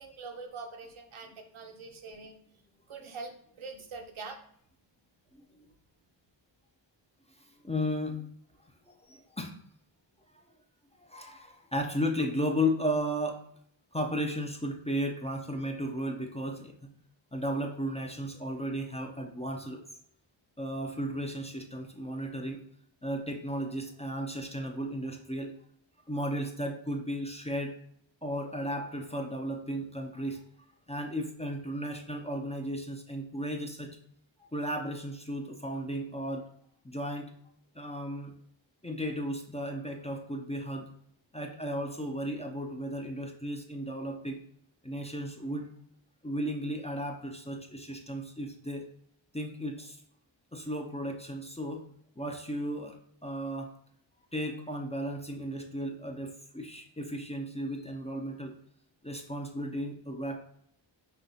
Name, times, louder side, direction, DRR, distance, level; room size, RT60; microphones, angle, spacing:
voice 1, 0.0-2.4 2.9-4.4, right 4 dB, 85° right, 3 dB, 0.9 m, -44 dB
voice 2, 7.4-8.3 8.9-9.5 11.0-13.4 13.9-16.9 17.3-19.8 20.6-22.6 23.0-25.5 26.1-27.7 28.2-30.4 30.9-33.9 34.5-36.5 36.8-37.3 37.7-38.3 38.8-40.9 41.3-44.4 44.8-45.7 46.2-48.9 49.3-50.0 50.5-51.8 52.2-53.0 53.2-53.7 54.3-58.6 59.0-60.4, equal, 15° left, 2 dB, 0.4 m, -34 dB
5.6 x 2.9 x 2.7 m, 0.66 s
wide cardioid pair, 115°, 48 cm